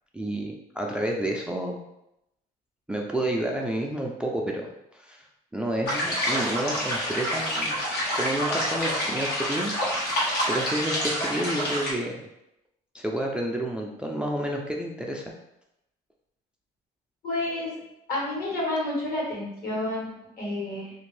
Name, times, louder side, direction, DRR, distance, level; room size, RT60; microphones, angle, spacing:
voice 1, 0.1-1.8 2.9-5.3 5.5-7.8 8.1-9.7 10.0-12.1 12.9-15.3, right 1 dB, 5° right, 0 dB, 0.3 m, -30 dB
sound 1, 5.9-11.9, equal, 80° left, 1.2 m, -27 dB
voice 2, 17.2-17.7 18.1-20.9, left 1 dB, 60° left, -3 dB, 1.4 m, -30 dB
2.8 x 2.6 x 3.2 m, 0.84 s
cardioid pair, 110°, 17 cm